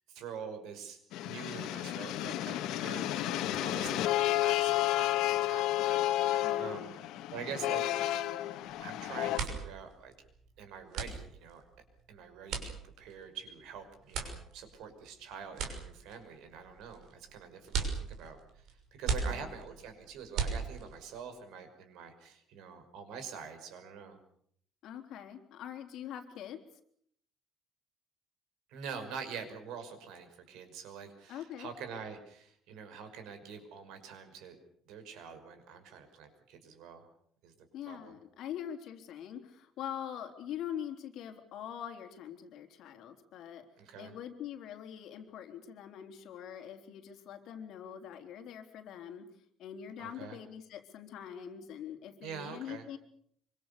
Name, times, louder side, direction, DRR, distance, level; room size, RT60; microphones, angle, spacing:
voice 1, 0.1-6.9 7.3-8.1 8.8-10.1 10.6-11.6 12.1-18.6 19.0-24.2 28.7-34.6 34.9-37.1 37.4-37.5 37.9-38.2 43.8-44.1 50.0-50.4 52.2-52.9, right 6 dB, 85° right, 8 dB, 5.7 m, -46 dB
sound 1, 1.1-9.4, left 14 dB, 80° left, 1.8 m, -31 dB
voice 2, 6.4-6.9 19.1-19.5 24.8-26.6 31.3-31.7 37.7-43.6 44.0-49.2 49.6-53.0, left 9 dB, 60° left, 4 dB, 4.0 m, -43 dB
sound 2, 8.6-8.9 9.2-21.1, right 5 dB, 60° right, 6.1 m, -38 dB
25.5 x 25.0 x 6.9 m, 0.66 s
cardioid pair, 170°, 0 cm